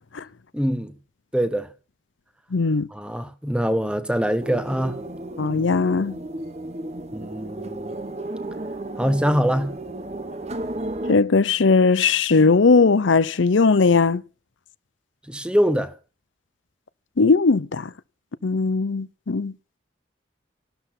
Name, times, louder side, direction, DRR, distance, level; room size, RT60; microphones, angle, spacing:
voice 1, 0.5-0.9 1.3-1.7 2.9-5.0 7.1-8.0 9.0-9.7 15.3-15.9, equal, 5° right, 1.1 m, -23 dB
voice 2, 2.5-2.9 5.4-6.2 11.1-14.2 17.2-17.9 18.4-19.5, left 4 dB, 90° left, 0.7 m, -18 dB
sound 1, 4.4-11.2, right 1 dB, 35° right, 1.0 m, -33 dB
14.5 x 12.5 x 5.9 m
head